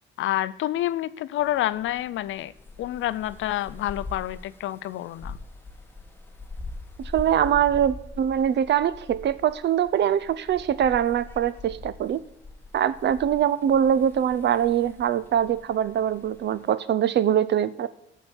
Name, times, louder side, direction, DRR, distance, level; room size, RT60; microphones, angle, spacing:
voice 1, 0.2-2.5 2.8-5.4, left 14 dB, 75° left, 16 dB, 0.5 m, -28 dB
sound 1, 1.4-16.7, left 2 dB, 10° left, 1.3 m, -43 dB
voice 2, 7.0-12.2 12.7-17.9, right 9 dB, 60° right, 16 dB, 0.7 m, -23 dB
13.0 x 4.7 x 7.0 m, 0.86 s
cardioid pair, 90°, 20 cm